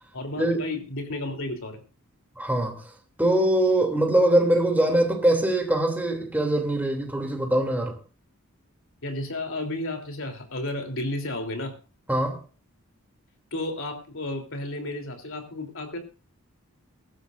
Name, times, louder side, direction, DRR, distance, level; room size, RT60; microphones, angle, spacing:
voice 1, 0.1-1.8 9.0-11.7 13.5-16.0, left 2 dB, 60° left, 3.5 m, -32 dB
voice 2, 2.4-2.8 3.2-8.0 12.1-12.4, right 1 dB, 10° right, 2.9 m, -22 dB
23.0 x 12.5 x 2.6 m
head